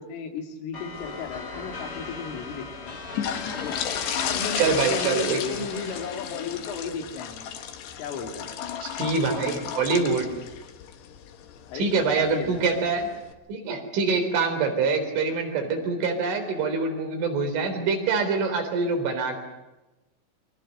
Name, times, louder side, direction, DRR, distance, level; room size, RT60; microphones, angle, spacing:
voice 1, 0.0-3.0 3.5-3.8 4.1-7.5 8.0-8.5 11.7-11.9 12.1-12.6, left 6 dB, 85° left, 4 dB, 4.9 m, -35 dB
sound 1, 0.7-7.0, left 3 dB, 50° left, 1.2 m, -39 dB
sound 2, 0.9-13.3, left 9 dB, 65° left, 3.5 m, -34 dB
voice 2, 4.6-5.6 8.8-10.3 11.7-13.1 13.5-19.4, right 4 dB, 75° right, 5 dB, 6.1 m, -25 dB
29.0 x 24.0 x 6.7 m, 1.1 s
omnidirectional pair, 5.6 m